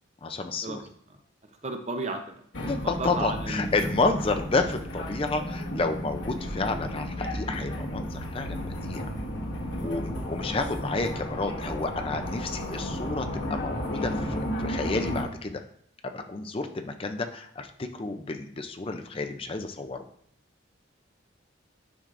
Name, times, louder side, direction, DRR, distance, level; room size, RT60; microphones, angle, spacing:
voice 1, 0.2-0.8 2.7-9.1 9.8-15.6 16.0-20.1, left 3 dB, 30° left, 6 dB, 0.5 m, -30 dB
voice 2, 1.6-2.2 3.0-3.7 9.8-9.9, right 2 dB, 35° right, 5 dB, 0.8 m, -33 dB
sound 1, 2.5-15.2, left 1 dB, 70° left, 1.2 m, -34 dB
sound 2, 2.9-13.7, right 2 dB, 10° right, 1.1 m, -43 dB
10.5 x 6.1 x 2.5 m, 0.64 s
head